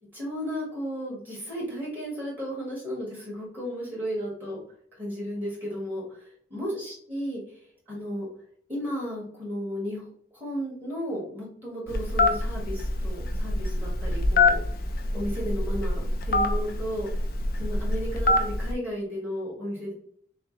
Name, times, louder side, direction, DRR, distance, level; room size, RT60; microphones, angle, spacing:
voice 1, 0.1-4.6 5.0-7.6 7.9-8.3 8.7-10.0 10.3-14.6 15.1-17.1 17.5-19.9, equal, 10° right, -6 dB, 1.6 m, -34 dB
Telephone, 11.9-18.7, left 2 dB, 50° left, 0.5 m, -25 dB
6.3 x 2.2 x 3.2 m, 0.63 s
head